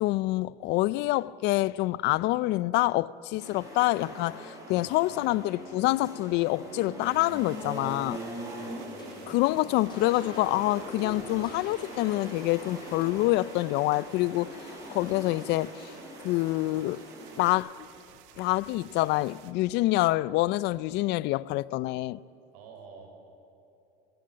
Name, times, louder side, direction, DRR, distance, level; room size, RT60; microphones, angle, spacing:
voice 1, 0.0-8.2 9.3-14.6 14.9-15.9 16.2-17.0 17.4-17.7 18.4-22.2, left 18 dB, 55° left, 0.5 m, -26 dB
sound 1, 3.4-17.5, equal, 15° right, 6.9 m, -42 dB
voice 2, 4.7-5.3 8.1-8.8 22.5-23.1, right 5 dB, 80° right, 5.6 m, -50 dB
sound 2, 7.0-19.5, right 10 dB, 65° right, 1.7 m, -54 dB
sound 3, 9.0-15.8, left 2 dB, 20° left, 5.2 m, -52 dB
29.0 x 13.0 x 8.8 m
supercardioid pair, 125°, 21 cm